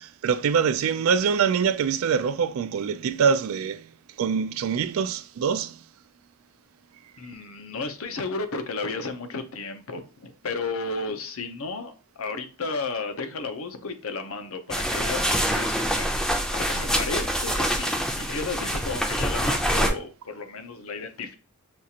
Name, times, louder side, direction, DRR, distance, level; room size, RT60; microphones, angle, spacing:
voice 1, 0.0-3.9 4.2-5.8, right 6 dB, 70° right, 0.3 m, -24 dB
voice 2, 7.2-21.4, left 3 dB, 80° left, 0.7 m, -33 dB
sound 1, 14.7-19.9, equal, 5° left, 0.5 m, -25 dB
6.1 x 2.4 x 2.8 m
head